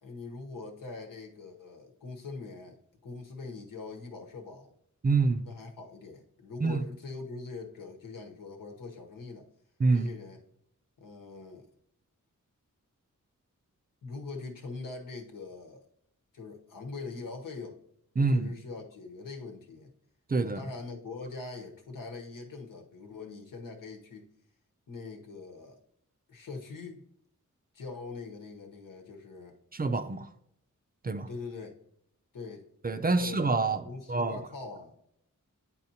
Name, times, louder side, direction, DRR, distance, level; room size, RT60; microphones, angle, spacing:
voice 1, 0.0-4.7 5.4-9.5 9.9-10.4 11.0-11.7 14.0-15.8 16.3-17.8 18.2-19.9 20.4-24.3 24.9-25.8 26.3-27.1 27.7-29.6 31.3-31.7 32.3-32.7 33.2-33.5 33.8-35.0, left 3 dB, 90° left, 2 dB, 1.1 m, -42 dB
voice 2, 5.0-5.5 6.6-6.8 9.8-10.1 18.2-18.5 20.3-20.6 29.7-30.3 31.0-31.3 32.8-34.4, right 3 dB, 30° right, 9 dB, 0.4 m, -27 dB
9.9 x 4.2 x 2.8 m, 0.75 s
wide cardioid pair, 120°, 32 cm